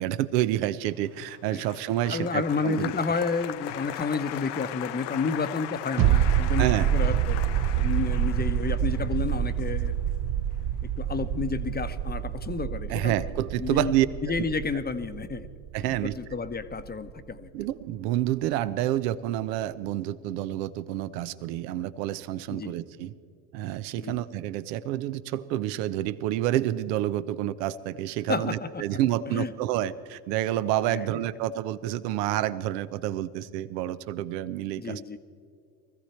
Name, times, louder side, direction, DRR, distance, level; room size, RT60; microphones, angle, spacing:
voice 1, 0.0-2.9 6.6-6.9 12.9-14.1 15.7-16.2 17.5-23.1 23.5-35.2, right 13 dB, 75° right, 15 dB, 0.8 m, -28 dB
Applause, 1.1-11.5 11.7-12.3, left 13 dB, 55° left, 0.7 m, -39 dB
voice 2, 2.1-9.9 10.8-13.2 13.6-13.9 14.2-15.5 15.8-17.5 22.5-22.7 24.0-24.2 28.3-29.0 29.3-29.5 30.9-31.2 34.8-35.2, left 4 dB, 20° left, 10 dB, 0.8 m, -31 dB
sound 1, 6.0-17.3 17.6-17.7, right 10 dB, 45° right, 0.6 m, -27 dB
20.0 x 14.5 x 4.4 m, 2.3 s
hypercardioid pair, 65°, 50 cm